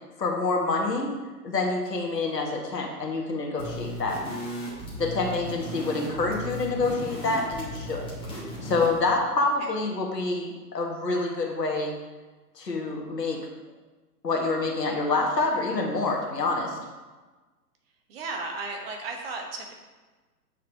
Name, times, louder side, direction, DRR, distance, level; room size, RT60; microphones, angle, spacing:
voice 1, 0.2-1.1 1.4-4.2 5.0-8.1 8.6-12.0 12.6-13.4 14.2-16.8, left 3 dB, 75° left, 0 dB, 1.9 m, -27 dB
sound 1, 3.6-9.0, equal, 10° left, 1.9 m, -36 dB
voice 2, 18.1-19.7, right 3 dB, 35° right, 2 dB, 1.3 m, -35 dB
9.1 x 4.7 x 4.7 m, 1.3 s
figure-of-eight pair, 125°, 50 cm